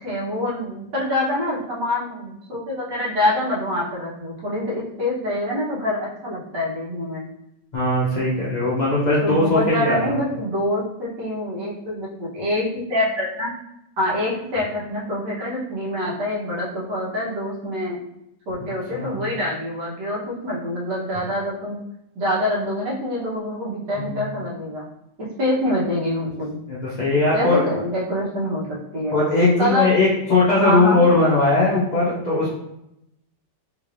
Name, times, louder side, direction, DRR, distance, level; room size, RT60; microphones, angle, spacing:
voice 1, 0.0-7.3 9.2-13.5 14.0-18.0 18.5-21.8 22.1-24.9 25.2-26.6 27.3-29.2 29.6-29.9 30.5-31.0, left 1 dB, 75° right, -6 dB, 1.8 m, -25 dB
voice 2, 7.7-10.2 18.9-19.2 24.0-24.2 26.7-27.6 29.1-32.5, left 2 dB, 55° left, -7 dB, 0.4 m, -19 dB
3.8 x 3.2 x 2.5 m, 0.83 s
omnidirectional pair, 1.9 m